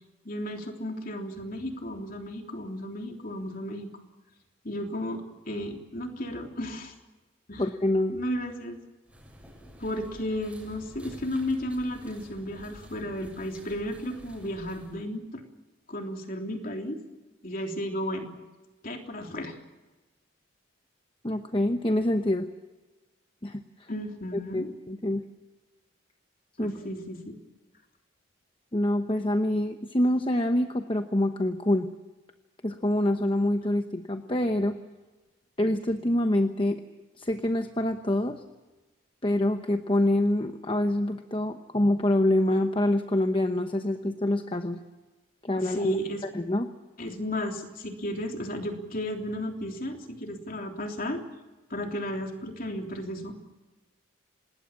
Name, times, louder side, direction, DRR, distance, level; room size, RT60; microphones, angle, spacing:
voice 1, 0.2-3.9 4.6-6.9 7.5-7.6 8.1-8.8 9.8-15.4 15.9-17.0 17.4-18.3 18.8-19.5 23.9-24.7 26.6-27.3 45.6-46.2 47.0-51.2 51.7-53.3, equal, 40° left, 3 dB, 3.4 m, -34 dB
voice 2, 7.6-8.2 21.2-22.5 23.4-23.9 24.5-25.2 26.6-26.7 28.7-31.9 32.6-34.8 35.6-36.8 37.2-38.4 39.2-44.8 45.4-46.0 46.2-46.7, left 1 dB, 25° left, 7 dB, 1.0 m, -26 dB
sound 1, 9.1-15.0, equal, 5° right, 6.8 m, -49 dB
27.0 x 20.0 x 7.3 m, 1.2 s
head